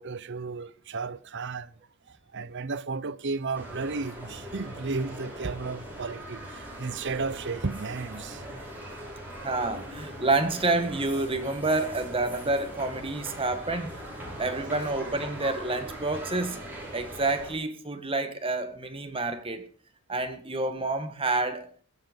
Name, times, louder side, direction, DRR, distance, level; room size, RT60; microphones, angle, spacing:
voice 1, 0.0-1.8 2.1-8.7, right 4 dB, 55° right, 0.7 m, -34 dB
sound 1, 3.5-17.5, equal, 10° right, 5.4 m, -41 dB
voice 2, 9.4-13.9 14.4-16.6 16.9-19.7 20.1-21.7, right 2 dB, 25° right, 1.6 m, -28 dB
21.0 x 7.6 x 5.3 m
head